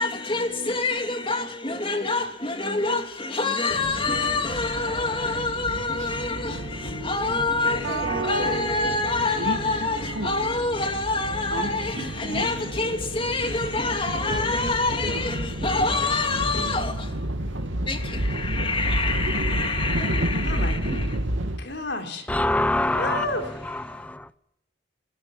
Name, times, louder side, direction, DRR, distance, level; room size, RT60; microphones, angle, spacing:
voice 1, 0.0-17.3 17.9-21.2, left 3 dB, 25° left, 2.8 m, -26 dB
sound 1, 3.7-21.6, right 1 dB, 80° right, 2.5 m, -30 dB
voice 2, 20.4-20.8 21.6-22.3 22.9-23.6, left 2 dB, 65° left, 4.1 m, -31 dB
voice 3, 22.3-23.2 23.7-24.4, left 1 dB, 5° left, 0.8 m, -25 dB
21.5 x 19.5 x 7.4 m
head